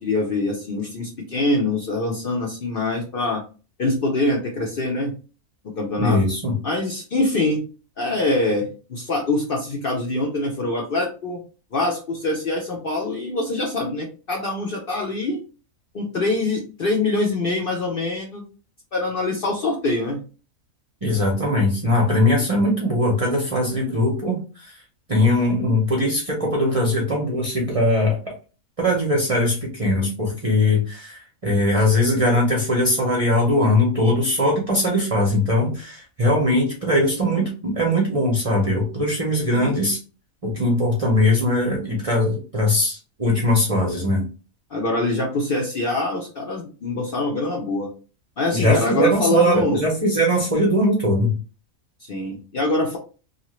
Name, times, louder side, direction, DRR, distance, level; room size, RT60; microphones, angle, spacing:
voice 1, 0.0-3.4 3.8-5.1 5.8-6.2 6.6-7.6 8.0-11.4 11.7-15.4 15.9-18.4 18.9-20.2 39.5-39.8 44.7-47.9 48.4-49.8 52.0-53.0, left 2 dB, 55° left, -1 dB, 0.7 m, -24 dB
voice 2, 6.0-6.5 21.0-24.7 25.1-28.2 28.8-40.0 40.4-44.2 48.5-51.4, left 1 dB, 35° right, -2 dB, 0.6 m, -20 dB
2.7 x 2.4 x 3.0 m, 0.35 s
omnidirectional pair, 1.5 m